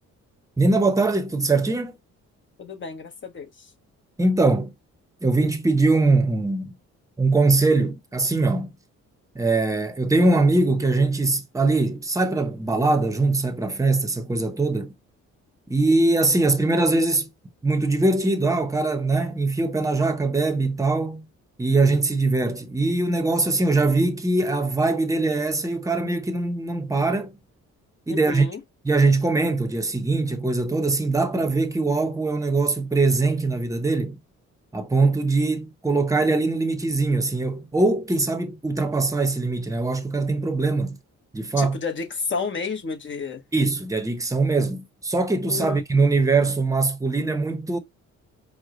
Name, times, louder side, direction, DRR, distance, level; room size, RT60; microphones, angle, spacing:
voice 1, 0.6-1.9 4.2-4.7 5.2-6.7 7.2-8.7 9.3-14.9 15.7-17.3 17.6-21.3 21.6-27.3 28.1-28.5 28.8-34.2 34.7-41.0 41.3-41.8 43.5-47.8, right 3 dB, 10° right, 0.8 m, -22 dB
voice 2, 2.6-3.7 28.1-28.6 41.6-43.4 45.4-45.8, left 5 dB, 40° left, 1.2 m, -31 dB
4.7 x 2.2 x 3.8 m
cardioid pair, 90°, 30 cm